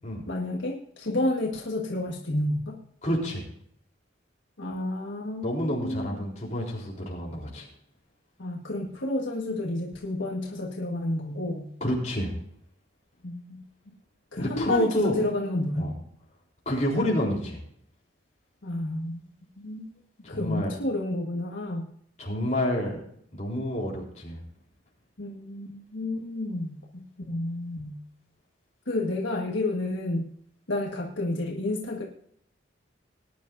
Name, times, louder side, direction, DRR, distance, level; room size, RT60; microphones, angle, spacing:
voice 1, 0.3-2.8 4.6-6.2 8.4-11.7 13.2-13.6 14.3-15.9 18.6-19.2 19.6-19.9 20.3-21.9 25.2-28.0 28.9-30.3 30.7-32.0, left 1 dB, 80° left, -1 dB, 1.6 m, -30 dB
voice 2, 3.0-3.4 5.4-7.7 11.8-12.3 14.4-15.1 15.8-15.9 16.7-17.6 20.2-20.7 22.2-23.0 23.3-24.4, equal, 35° left, -2 dB, 3.8 m, -28 dB
19.5 x 10.5 x 2.7 m, 0.67 s
head